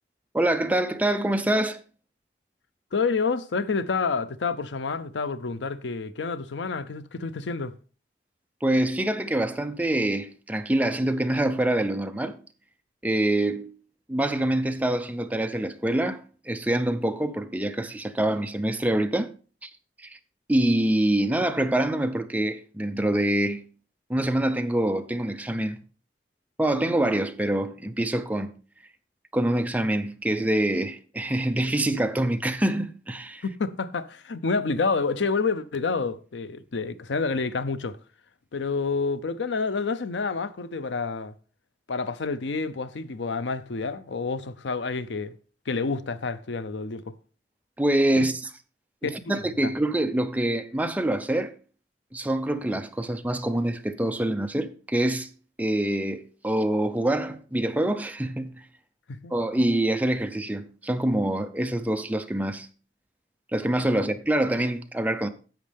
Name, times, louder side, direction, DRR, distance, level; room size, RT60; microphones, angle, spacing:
voice 1, 0.3-1.8 8.6-12.4 13.0-13.8 14.1-19.3 19.6-19.7 20.0-20.2 20.5-23.7 24.1-25.8 26.6-28.6 29.3-33.4 47.8-48.4 49.0-51.5 52.1-55.3 55.6-58.7 59.3-62.7 63.5-65.3, right 1 dB, 10° right, 0.6 m, -25 dB
voice 2, 2.9-7.7 33.4-38.0 38.5-41.3 41.9-45.4 45.7-47.2 48.2-48.3 49.0-49.3 49.6-49.7 59.1-59.3, left 4 dB, 90° left, 0.6 m, -28 dB
10.5 x 7.5 x 3.4 m
head